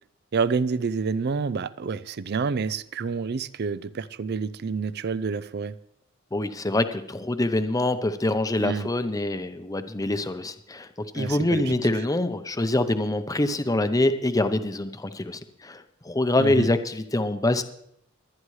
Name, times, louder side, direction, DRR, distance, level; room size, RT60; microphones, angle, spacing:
voice 1, 0.3-5.7 8.6-8.9 11.1-11.8 16.4-16.7, right 5 dB, 55° right, 0.4 m, -28 dB
voice 2, 6.3-10.9 11.1-17.6, left 1 dB, 15° left, 0.7 m, -25 dB
22.5 x 9.7 x 3.2 m
head